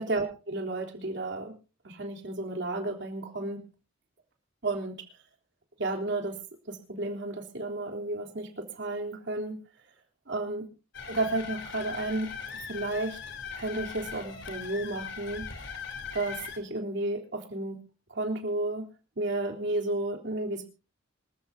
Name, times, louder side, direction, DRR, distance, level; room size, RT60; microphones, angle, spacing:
voice 1, 0.1-1.5 1.8-3.6 4.6-5.0 5.8-6.4 6.7-9.6 10.3-10.6 11.1-12.3 12.7-13.2 13.5-15.5 16.1-17.8 18.1-18.9 19.2-20.6, right 2 dB, 65° right, 2 dB, 3.6 m, -32 dB
sound 1, 10.9-16.6, left 6 dB, 65° left, 3.8 m, -40 dB
26.0 x 14.0 x 2.7 m, 0.34 s
head